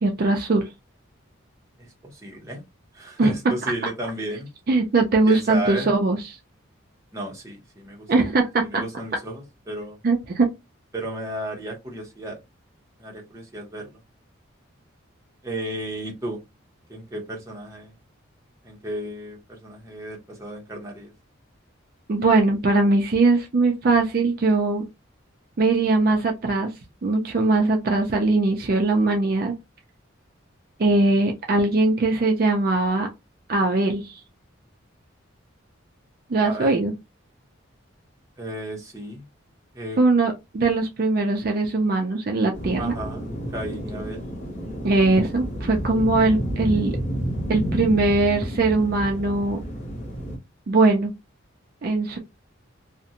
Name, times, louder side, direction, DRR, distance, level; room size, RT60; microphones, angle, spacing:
voice 1, 0.0-0.6 3.2-3.3 4.7-6.4 8.1-8.8 10.0-10.5 22.1-24.8 25.6-26.7 27.0-29.5 30.8-33.1 33.5-34.2 36.3-36.9 40.0-43.0 44.8-47.0 47.5-49.6 50.7-51.1 51.8-52.2, right 3 dB, 45° right, 0.4 m, -21 dB
voice 2, 2.0-2.6 2.9-4.5 5.3-5.9 7.1-8.3 8.6-10.0 10.9-12.4 13.0-14.0 15.4-16.4 16.9-17.9 18.6-21.1 36.4-36.8 38.4-39.2 39.7-40.0 42.8-44.3, right 1 dB, 15° right, 0.7 m, -34 dB
sound 1, 42.5-50.4, equal, 35° left, 0.8 m, -30 dB
2.5 x 2.1 x 2.7 m
head